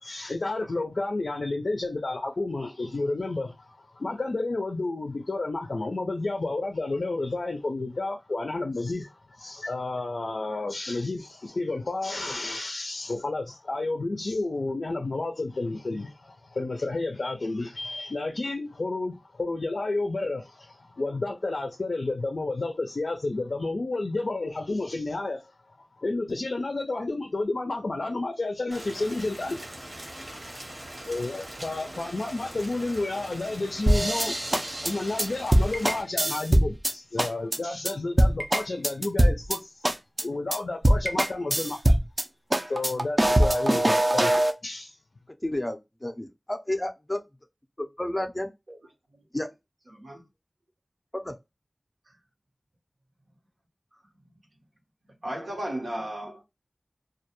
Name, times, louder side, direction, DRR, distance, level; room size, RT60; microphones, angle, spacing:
voice 1, 0.0-25.5 26.0-29.6 31.0-34.3 34.8-39.8 40.2-42.0 42.7-45.0, left 2 dB, 80° left, 0.4 m, -31 dB
Rain, 28.7-36.0, right 1 dB, 50° right, 0.9 m, -42 dB
sound 1, 33.9-36.9 37.2-37.6 37.8-37.9 38.2-39.6 39.8-40.2 40.5-40.6 40.8-42.2 42.5-44.5, right 1 dB, 35° right, 0.4 m, -22 dB
voice 2, 45.4-47.2 47.8-48.5 49.3-49.5 51.1-51.3, left 1 dB, 25° left, 0.5 m, -31 dB
voice 3, 49.9-50.2 55.2-56.4, right 1 dB, 80° right, 0.9 m, -35 dB
2.2 x 2.2 x 2.9 m
wide cardioid pair, 55°, 0 cm